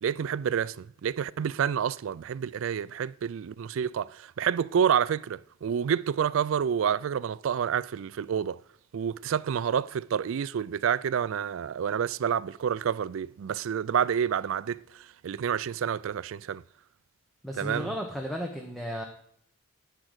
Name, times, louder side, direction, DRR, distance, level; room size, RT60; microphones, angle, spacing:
voice 1, 0.0-8.6 8.9-16.6 17.6-17.9, right 8 dB, 65° right, 0.3 m, -28 dB
voice 2, 17.4-19.0, equal, ahead, 0.9 m, -34 dB
10.5 x 4.9 x 8.0 m
head